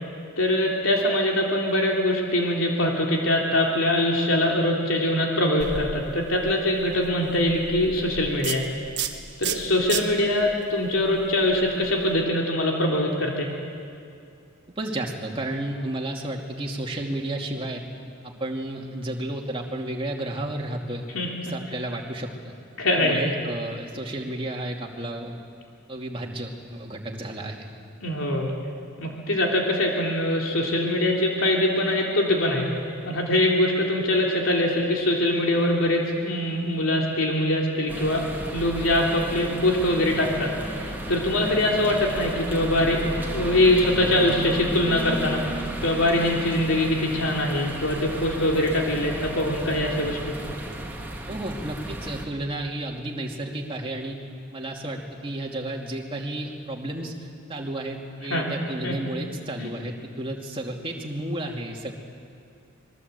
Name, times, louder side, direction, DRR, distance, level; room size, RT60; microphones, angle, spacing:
voice 1, 0.4-8.6 9.4-13.5 21.1-21.3 22.8-23.3 28.0-28.5 29.0-32.7 33.0-38.2 38.5-43.0 43.3-50.4 58.3-58.5 58.8-58.9 59.6-59.7, left 1 dB, 75° left, -1 dB, 3.3 m, -23 dB
sound 1, 5.6-12.2, right 7 dB, 55° right, 1.5 m, -35 dB
voice 2, 14.8-17.8 18.2-21.1 21.5-22.5 22.9-25.4 25.9-27.7 51.3-54.2 54.5-57.1 57.5-61.9, right 1 dB, 25° right, 0 dB, 2.5 m, -32 dB
sound 2, 37.9-52.2, right 1 dB, 10° right, 2.6 m, -34 dB
25.5 x 21.5 x 8.3 m, 2.4 s
head